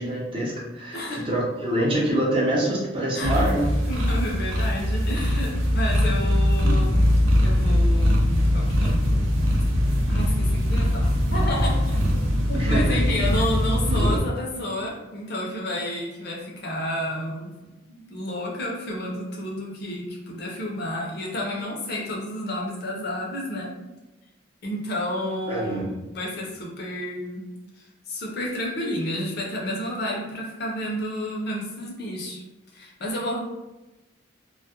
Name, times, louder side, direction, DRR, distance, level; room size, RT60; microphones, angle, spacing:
voice 1, 0.0-3.7 6.6-6.8 12.5-13.0 13.9-14.2 25.5-25.9, right 1 dB, 25° right, -5 dB, 0.5 m, -25 dB
voice 2, 0.9-1.3 3.1-3.3 3.9-7.1 7.4-9.0 10.1-12.0 12.5-17.5 17.9-23.8 24.6-27.5 27.8-32.4 32.7-33.4, left 1 dB, 55° left, -2 dB, 0.5 m, -31 dB
sound 1, 3.2-14.2, equal, 85° right, 0.5 m, -21 dB
2.2 x 2.0 x 2.8 m, 1.0 s
head